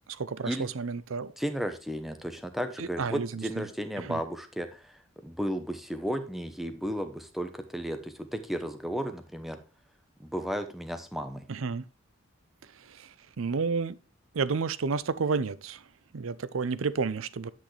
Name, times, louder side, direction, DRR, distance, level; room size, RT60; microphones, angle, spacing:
voice 1, 0.1-1.3 2.8-3.7 4.0-4.2 11.5-11.8 12.6-14.0 14.3-15.8 16.1-17.5, right 5 dB, 85° right, 0.6 m, -31 dB
voice 2, 1.4-9.6 10.2-11.4, equal, ahead, 0.9 m, -34 dB
10.5 x 6.2 x 3.3 m
head